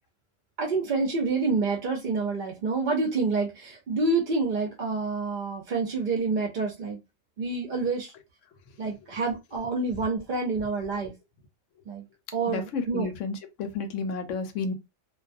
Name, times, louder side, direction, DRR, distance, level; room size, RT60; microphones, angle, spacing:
voice 1, 0.6-7.0 7.4-8.1 8.8-11.1 11.9-12.1 12.3-13.1, right 3 dB, 60° right, 0.5 m, -28 dB
voice 2, 12.5-14.7, left 4 dB, 75° left, 0.9 m, -31 dB
2.2 x 2.2 x 2.5 m
omnidirectional pair, 1.3 m